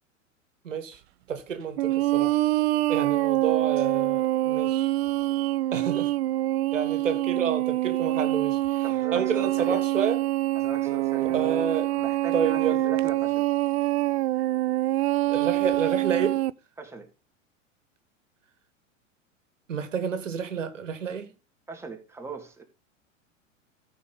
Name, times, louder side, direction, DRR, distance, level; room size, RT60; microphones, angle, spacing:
voice 1, 0.6-1.0 1.3-2.4 2.9-4.9 5.7-6.1 6.7-8.8 9.1-10.2 11.3-11.9 12.3-12.8 15.3-16.4 19.7-21.3, right 7 dB, 75° right, 1.6 m, -29 dB
sound 1, 1.8-16.5, right 16 dB, 55° right, 0.5 m, -25 dB
voice 2, 8.8-9.8 10.6-11.4 11.9-13.5 16.8-17.1 21.7-22.6, right 4 dB, 5° right, 2.0 m, -39 dB
14.0 x 4.9 x 5.4 m
figure-of-eight pair, 90°, 38 cm